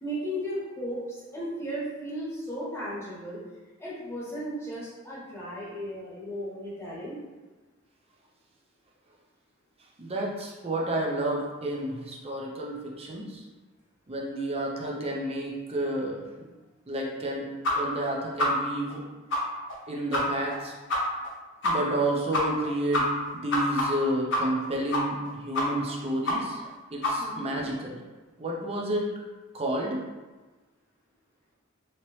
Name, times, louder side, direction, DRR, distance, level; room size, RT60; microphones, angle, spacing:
voice 1, 0.0-3.4 3.8-7.2 27.2-27.5, equal, 15° left, -7 dB, 1.0 m, -35 dB
voice 2, 10.0-13.4 14.1-16.3 16.9-17.5 17.7-19.0 19.9-20.7 21.6-23.1 23.3-26.6 26.9-28.0 28.4-29.0 29.5-30.0, right 1 dB, 30° right, -2 dB, 0.5 m, -30 dB
sound 1, 17.6-17.7 18.0-18.1 18.4-18.5 18.9-19.0 19.3-19.4 19.7-19.8 20.1-20.2 20.5-20.6 20.9-21.0 21.2-21.3 21.6-21.7 22.0-22.1 22.3-22.7 22.9-24.6 24.9-25.3 25.5-25.9 26.2-26.4 26.6-26.7 27.0-27.1, left 1 dB, 65° left, 0.7 m, -26 dB
2.9 x 2.9 x 3.1 m, 1.2 s
head